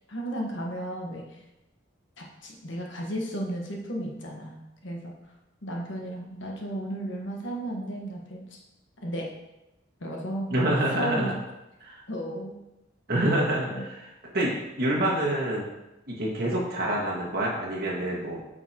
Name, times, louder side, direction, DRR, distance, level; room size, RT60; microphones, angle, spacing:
voice 1, 0.1-1.4 2.2-4.6 4.8-5.1 5.6-8.6 9.0-9.3 10.0-11.3 12.1-12.5 13.7-13.8, right 1 dB, 75° left, 0 dB, 1.3 m, -34 dB
voice 2, 10.5-11.3 11.8-12.0 13.1-15.6 16.1-18.4, right 1 dB, 50° right, -4 dB, 1.7 m, -27 dB
8.2 x 5.6 x 2.9 m, 0.94 s
head